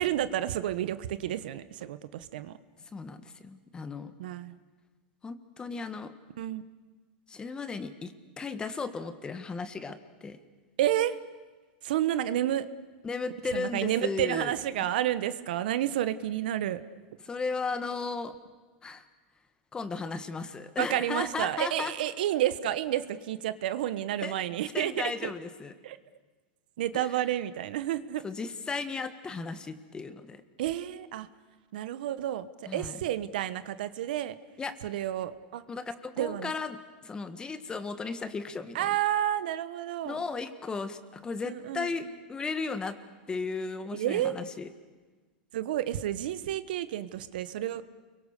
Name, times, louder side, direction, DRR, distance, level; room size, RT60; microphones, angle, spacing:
voice 1, 0.0-2.6 4.2-4.5 6.4-6.6 10.8-11.2 11.8-12.7 13.5-16.8 20.8-25.3 25.8-26.0 26.8-28.2 30.6-31.3 31.7-34.4 34.8-35.6 36.2-36.5 38.7-40.2 41.4-41.9 43.9-44.4 45.5-47.8, right 12 dB, 75° right, 13 dB, 1.2 m, -30 dB
voice 2, 2.9-4.1 5.2-6.1 7.3-10.4 13.0-14.5 17.2-18.3 18.8-19.0 19.7-21.9 24.2-24.4 24.7-25.7 26.9-27.1 28.2-30.4 32.7-33.0 34.6-34.7 35.7-38.9 40.0-43.0 43.3-44.7, left 4 dB, 15° left, 10 dB, 1.6 m, -35 dB
29.5 x 23.0 x 6.7 m, 1.3 s
supercardioid pair, 130°, 5 cm